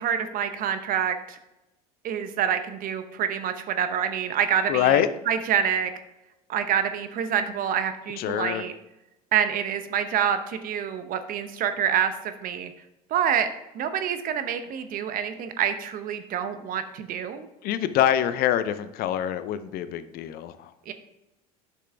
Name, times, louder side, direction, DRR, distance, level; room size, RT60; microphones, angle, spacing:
voice 1, 0.0-1.4 2.0-5.9 6.5-8.7 9.3-12.7 13.1-13.5 13.7-17.5 20.9-21.0, right 8 dB, 50° right, 9 dB, 0.9 m, -27 dB
voice 2, 4.7-5.1 8.2-8.6 17.6-20.7, left 11 dB, 55° left, 12 dB, 0.7 m, -25 dB
8.2 x 6.1 x 3.5 m, 0.93 s
hypercardioid pair, 80°, 19 cm